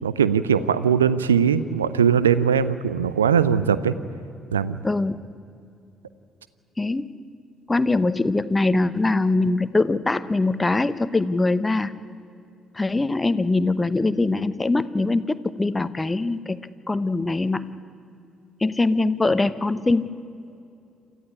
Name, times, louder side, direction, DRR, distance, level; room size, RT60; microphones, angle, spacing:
voice 1, 0.0-3.9 4.5-4.8, right 7 dB, 80° right, 16 dB, 0.6 m, -20 dB
voice 2, 4.8-5.2 6.8-7.1 7.7-11.9 12.7-16.6 16.9-17.7 18.6-20.2, left 2 dB, 20° left, 14 dB, 1.0 m, -22 dB
28.0 x 14.0 x 9.6 m, 2.6 s
figure-of-eight pair, 45°, 0 cm